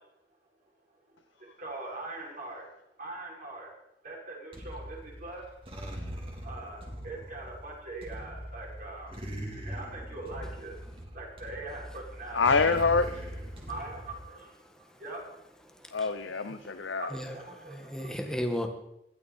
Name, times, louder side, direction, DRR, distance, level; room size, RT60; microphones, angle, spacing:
voice 1, 1.4-2.7 3.0-3.7 4.0-5.4 6.4-9.1 9.6-10.8 11.1-12.4 13.7-15.3 17.0-18.2, right 2 dB, 50° right, 6.2 m, -42 dB
sound 1, 4.5-14.2, equal, 30° right, 3.4 m, -41 dB
voice 2, 12.3-13.2 15.9-17.1, left 4 dB, 85° left, 0.8 m, -26 dB
voice 3, 15.7-16.0 17.1-18.7, equal, 5° left, 1.8 m, -35 dB
20.5 x 12.5 x 4.4 m
head